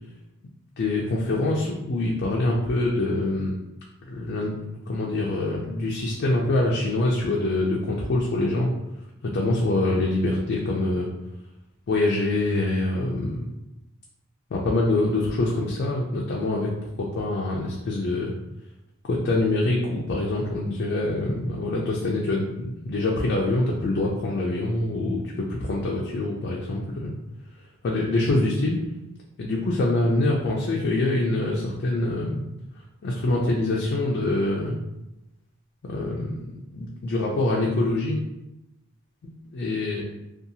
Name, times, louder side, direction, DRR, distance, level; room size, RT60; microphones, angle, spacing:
voice 1, 0.8-3.6 4.1-4.6 4.9-8.7 9.2-11.1 11.9-13.4 14.5-18.3 19.1-27.1 27.8-28.8 29.4-32.4 33.0-34.8 35.8-38.2 39.5-40.0, left 2 dB, 50° left, -2 dB, 0.4 m, -25 dB
2.7 x 2.3 x 2.6 m, 0.91 s
head